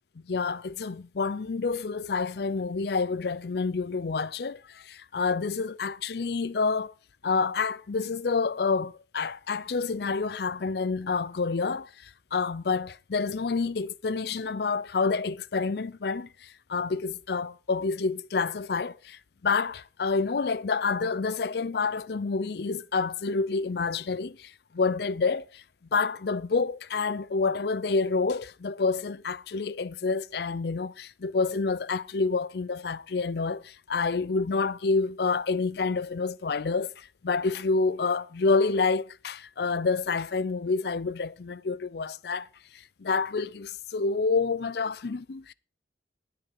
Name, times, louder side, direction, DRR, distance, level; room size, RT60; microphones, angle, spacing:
voice 1, 0.3-6.9 7.2-25.6 25.9-42.5 43.0-45.5, left 4 dB, 60° left, 0.5 m, -28 dB
19.5 x 6.9 x 4.6 m
head